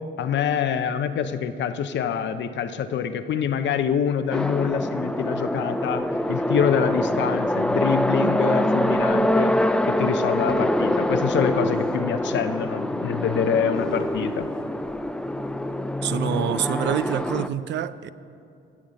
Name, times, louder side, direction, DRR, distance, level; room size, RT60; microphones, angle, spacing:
voice 1, 0.2-9.5 9.9-14.5, left 7 dB, 65° left, 10 dB, 0.7 m, -25 dB
sound 1, 4.3-17.5, left 1 dB, 5° left, 0.4 m, -25 dB
voice 2, 16.0-18.1, right 11 dB, 65° right, 14 dB, 0.5 m, -26 dB
16.5 x 7.3 x 5.2 m, 2.6 s
cardioid pair, 90°, 20 cm